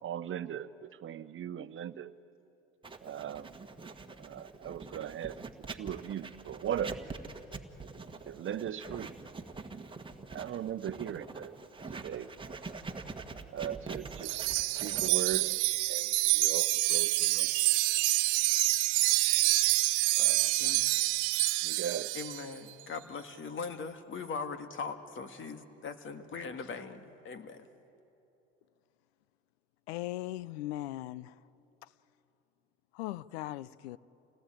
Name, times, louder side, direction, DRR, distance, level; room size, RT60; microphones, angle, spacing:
voice 1, 0.0-2.1 3.0-3.6 4.2-5.4 5.7-7.1 8.2-9.1 10.3-11.5 11.9-12.3 13.5-14.5 14.8-15.6 15.9-17.5 20.2-20.6 21.6-22.1, right 9 dB, 40° right, 13 dB, 1.0 m, -38 dB
Writing, 2.8-17.6, right 3 dB, 15° right, 1.7 m, -45 dB
Wind chime, 14.2-22.4, right 21 dB, 70° right, 0.7 m, -27 dB
voice 2, 22.1-27.7, left 5 dB, 40° left, 8 dB, 2.0 m, -40 dB
voice 3, 29.9-31.4 32.9-34.0, left 15 dB, 80° left, 20 dB, 0.7 m, -38 dB
28.5 x 18.5 x 9.1 m, 2.9 s
hypercardioid pair, 75°, 31 cm